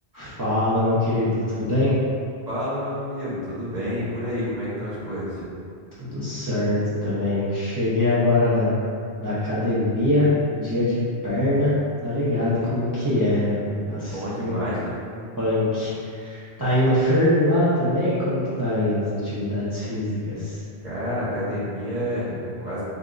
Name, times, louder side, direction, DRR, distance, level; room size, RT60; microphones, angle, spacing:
voice 1, 0.1-1.9 6.0-8.7 9.2-14.6 15.4-20.6, left 1 dB, 20° right, -12 dB, 0.8 m, -23 dB
voice 2, 2.5-5.4 12.4-12.7 12.9-13.1 14.1-14.9 20.8-22.8, equal, 40° right, -10 dB, 1.5 m, -29 dB
7.9 x 2.7 x 2.5 m, 2.4 s
omnidirectional pair, 1.1 m